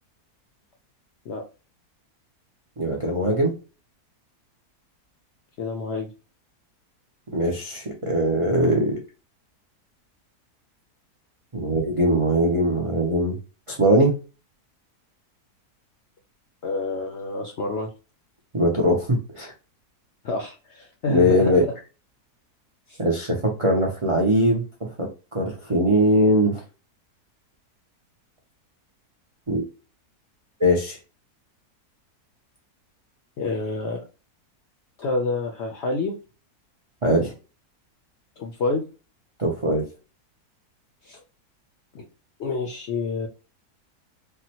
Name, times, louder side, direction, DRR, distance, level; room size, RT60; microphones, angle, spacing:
voice 1, 2.8-3.5 7.3-9.0 11.5-13.4 13.7-14.1 18.5-19.5 21.1-21.6 23.0-24.6 25.3-26.6 29.5-29.6 30.6-31.0 37.0-37.3 39.4-39.8, equal, 55° right, -1 dB, 0.3 m, -21 dB
voice 2, 5.6-6.1 16.6-17.9 20.2-21.7 22.9-23.0 33.4-34.0 35.0-36.1 38.4-38.8 41.0-41.2 41.9-42.1 42.4-43.3, left 3 dB, 65° left, 2 dB, 0.7 m, -28 dB
3.6 x 2.1 x 2.8 m, 0.33 s
omnidirectional pair, 1.7 m